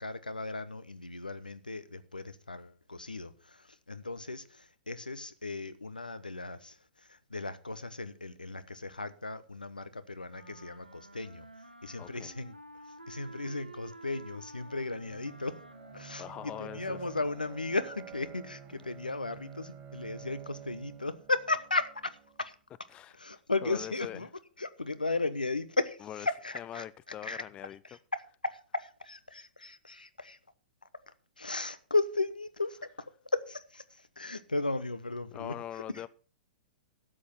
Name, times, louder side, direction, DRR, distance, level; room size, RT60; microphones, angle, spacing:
voice 1, 0.0-11.5 11.8-12.5 13.1-15.6 15.9-22.5 23.2-24.3 24.6-26.9 27.2-27.4 27.8-30.4 31.1-35.6 35.9-36.0, left 3 dB, 85° left, 1.0 m, -35 dB
sound 1, 10.3-17.6, right 2 dB, 90° right, 1.3 m, -51 dB
voice 2, 12.0-12.3 16.2-17.0 22.9-24.2 26.1-26.3 26.5-27.8 34.2-34.3 35.3-36.1, left 11 dB, 25° left, 0.5 m, -42 dB
Bowed string instrument, 14.6-22.4, right 9 dB, 30° right, 3.1 m, -50 dB
12.5 x 8.5 x 5.8 m
figure-of-eight pair, 105°, 5 cm